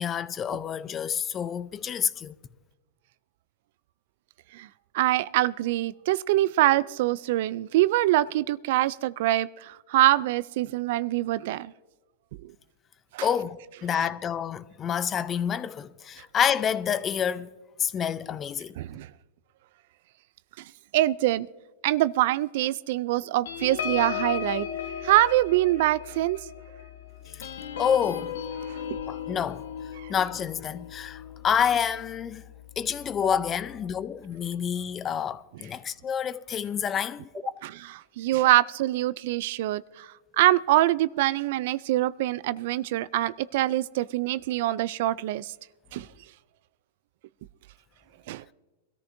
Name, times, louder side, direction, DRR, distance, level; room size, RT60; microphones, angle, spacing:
voice 1, 0.0-2.4 13.2-17.5 17.8-18.8 27.3-27.4 27.8-28.3 29.1-29.7 30.1-32.4 32.8-37.3, left 8 dB, 25° left, 0.6 m, -28 dB
voice 2, 4.9-11.7 12.4-12.5 13.1-13.3 18.8-19.1 20.9-21.5 21.8-24.7 25.0-26.4 28.7-28.8 30.0-30.1 37.6-37.7 38.2-45.5 45.9-46.1 48.3-48.4, right 16 dB, 60° right, 0.3 m, -24 dB
sound 1, 23.4-32.4 32.8-33.0 33.3-33.6, left 9 dB, 80° left, 1.3 m, -36 dB
23.5 x 13.5 x 2.6 m
hypercardioid pair, 120°, 0 cm